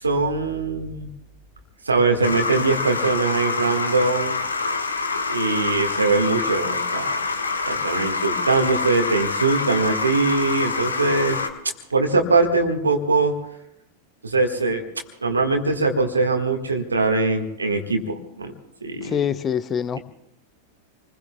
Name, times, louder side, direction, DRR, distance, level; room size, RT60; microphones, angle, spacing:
voice 1, 0.0-1.1 1.8-4.4 5.3-7.2 7.6-11.4 11.9-13.3 14.2-14.8 15.2-18.5 18.8-19.2, right 3 dB, 75° right, 1.7 m, -22 dB
sound 1, 2.2-11.5, left 4 dB, 75° left, 1.2 m, -26 dB
voice 2, 19.0-20.0, left 8 dB, 25° left, 0.7 m, -24 dB
28.0 x 20.5 x 2.3 m
figure-of-eight pair, 90°, 0 cm